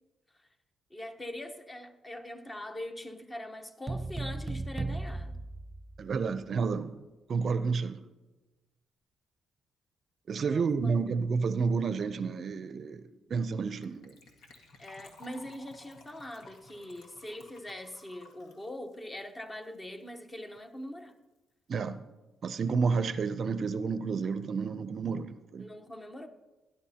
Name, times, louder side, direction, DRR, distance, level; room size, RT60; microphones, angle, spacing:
voice 1, 0.9-5.3 10.3-10.9 14.8-21.2 25.6-26.3, left 1 dB, 20° left, 7 dB, 0.9 m, -42 dB
sound 1, 3.9-6.4, right 2 dB, 20° right, 0.7 m, -36 dB
voice 2, 6.0-6.9 7.3-8.0 10.3-14.1 21.7-22.0 22.4-25.7, right 5 dB, 50° right, 12 dB, 0.5 m, -30 dB
Gurgling / Trickle dribble / Fill (with liquid), 13.8-20.1 20.3-20.4 20.6-20.8 21.1-21.2, left 2 dB, 80° left, 1.7 m, -56 dB
17.0 x 10.5 x 2.8 m, 1.1 s
cardioid pair, 90°, 0 cm